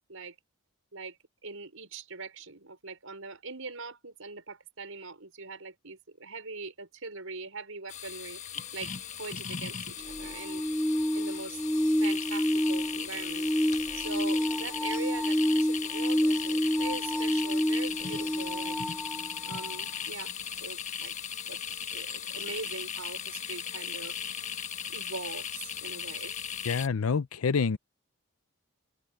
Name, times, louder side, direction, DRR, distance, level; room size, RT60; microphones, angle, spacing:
voice 1, 1.4-8.4 8.7-8.9 9.2-10.6 11.1-11.6 12.0-13.5 14.0-18.8 19.4-21.1 21.5-21.6 21.9-24.2 24.9-26.3, right 3 dB, 75° right, 5.7 m, -42 dB
sound 1, 7.9-26.9, left 8 dB, 35° left, 1.3 m, -37 dB
sound 2, 10.0-19.8 22.1-22.2, equal, 5° left, 0.3 m, -29 dB
voice 2, 26.6-27.8, left 5 dB, 85° left, 0.6 m, -27 dB
open air
head